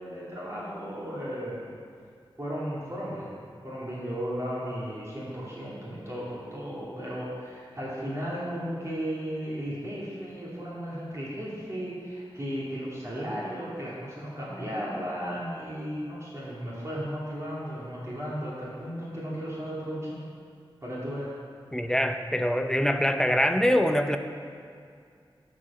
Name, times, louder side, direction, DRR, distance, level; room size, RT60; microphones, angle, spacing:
voice 1, 0.0-1.7 2.4-20.2 20.8-21.3, equal, 30° right, -8 dB, 2.8 m, -35 dB
voice 2, 21.7-24.2, equal, 5° left, 7 dB, 0.6 m, -24 dB
12.5 x 5.1 x 5.5 m, 2.3 s
wide cardioid pair, 70°, 9 cm